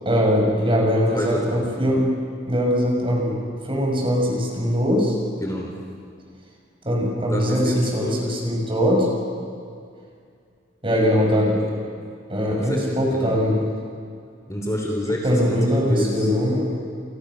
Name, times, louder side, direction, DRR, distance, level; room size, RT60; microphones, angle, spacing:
voice 1, 0.0-2.1 2.5-3.4 3.6-5.2 6.8-9.1 10.8-11.6 12.3-13.6 15.2-16.6, equal, 30° right, 0 dB, 6.6 m, -21 dB
voice 2, 1.1-1.7 5.4-5.8 7.3-8.2 11.6-11.7 12.4-13.4 14.5-16.3, equal, 15° left, 0 dB, 3.4 m, -28 dB
29.5 x 28.5 x 6.4 m, 2.3 s
head